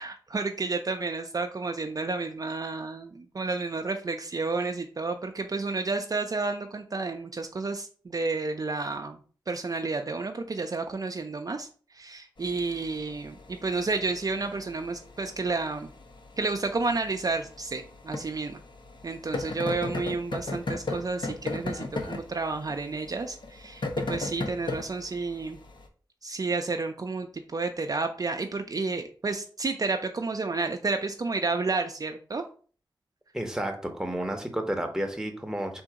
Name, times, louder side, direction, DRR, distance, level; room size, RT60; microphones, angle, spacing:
voice 1, 0.0-9.2 9.5-11.7 11.9-15.9 16.4-18.6 19.0-25.6 26.2-32.4, right 3 dB, 45° right, 5 dB, 0.4 m, -31 dB
sound 1, 12.4-25.9, left 3 dB, 70° left, 0.7 m, -37 dB
voice 2, 33.3-35.8, right 1 dB, 5° right, 4 dB, 0.8 m, -31 dB
3.7 x 2.6 x 4.7 m, 0.41 s
wide cardioid pair, 75°, 8 cm